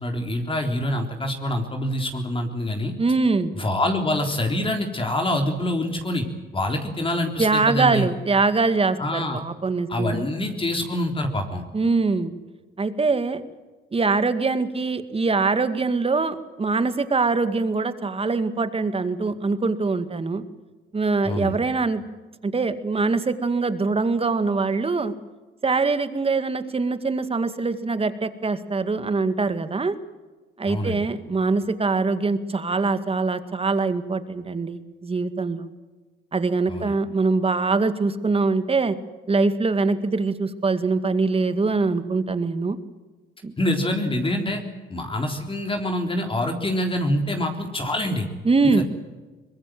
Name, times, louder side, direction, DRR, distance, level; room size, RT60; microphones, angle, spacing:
voice 1, 0.0-2.9 3.6-6.3 6.5-8.1 9.0-9.4 9.9-11.6 21.2-21.6 30.7-31.0 36.7-36.9 43.6-44.6 44.9-48.3 48.6-48.8, left 1 dB, 25° left, 3 dB, 3.7 m, -25 dB
voice 2, 3.0-3.5 7.4-10.3 11.7-12.3 12.8-13.4 13.9-20.4 20.9-22.0 22.4-25.1 25.6-30.0 30.6-35.7 36.3-39.0 39.3-42.8 43.4-43.5 48.4-48.8, right 3 dB, 30° right, 10 dB, 2.0 m, -23 dB
23.0 x 21.0 x 7.7 m, 1.3 s
cardioid pair, 90°, 20 cm